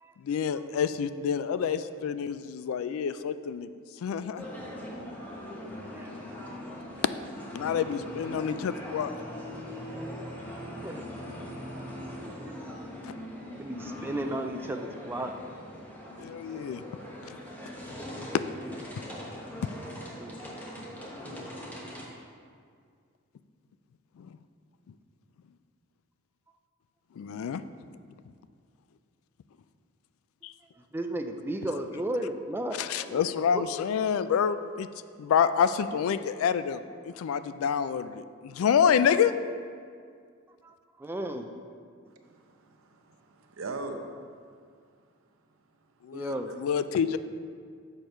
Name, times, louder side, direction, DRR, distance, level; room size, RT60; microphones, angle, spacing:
voice 1, 0.2-3.7 4.0-4.5 7.5-9.1 13.0-13.1 16.2-16.8 17.3-17.4 18.3-18.4 19.6-19.7 24.2-24.3 27.2-27.6 30.4-30.5 32.8-34.9 35.2-39.3 46.0-47.2, left 7 dB, 75° left, 13 dB, 0.3 m, -28 dB
sound 1, 4.4-22.0, equal, 10° left, 0.9 m, -41 dB
voice 2, 9.8-11.0 12.3-12.6 13.5-15.3 18.6-18.8 20.2-20.3 30.9-33.2 33.5-33.6 37.4-37.5 40.6-41.5 46.1-46.5, right 1 dB, 10° right, 5 dB, 0.3 m, -35 dB
voice 3, 42.1-44.0 46.5-46.6, right 3 dB, 70° right, 4 dB, 0.7 m, -41 dB
6.7 x 4.5 x 5.3 m, 2.1 s
head